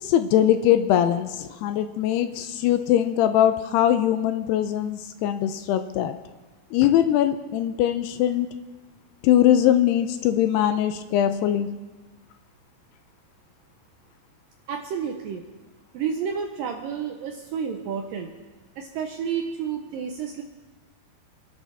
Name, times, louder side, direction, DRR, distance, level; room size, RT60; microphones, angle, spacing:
voice 1, 0.0-6.1 6.7-8.5 9.2-11.7, left 11 dB, 80° left, 10 dB, 2.5 m, -21 dB
voice 2, 14.7-15.4 15.9-18.3 18.8-20.4, right 7 dB, 80° right, 3 dB, 2.1 m, -30 dB
28.0 x 11.0 x 3.5 m, 1.2 s
omnidirectional pair, 5.0 m